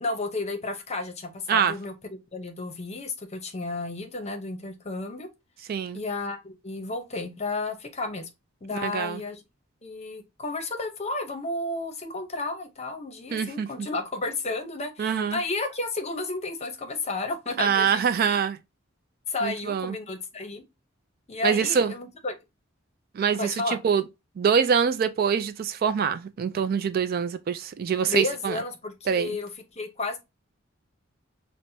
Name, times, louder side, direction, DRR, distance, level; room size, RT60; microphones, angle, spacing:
voice 1, 0.0-1.9 2.3-5.3 5.9-8.3 8.6-9.4 9.8-18.1 19.3-20.6 21.3-22.3 23.3-23.8 28.0-30.2, left 3 dB, 35° left, 0.8 m, -32 dB
voice 2, 5.7-6.0 8.7-9.2 13.3-13.9 15.0-15.4 17.6-18.6 19.4-20.0 21.4-21.9 23.1-24.0 24.4-28.6 29.1-29.3, right 7 dB, 50° right, 0.3 m, -25 dB
5.9 x 2.1 x 2.7 m
head